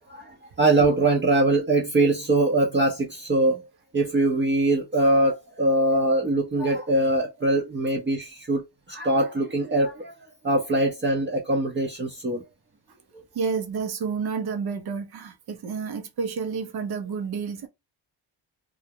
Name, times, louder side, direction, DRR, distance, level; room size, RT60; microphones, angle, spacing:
voice 1, 0.1-3.6 3.9-8.6 8.9-10.1 10.4-12.4, right 2 dB, 25° right, 0.7 m, -22 dB
voice 2, 13.3-17.7, right 5 dB, 60° right, 0.8 m, -30 dB
2.4 x 2.0 x 2.7 m
cardioid pair, 75°, 43 cm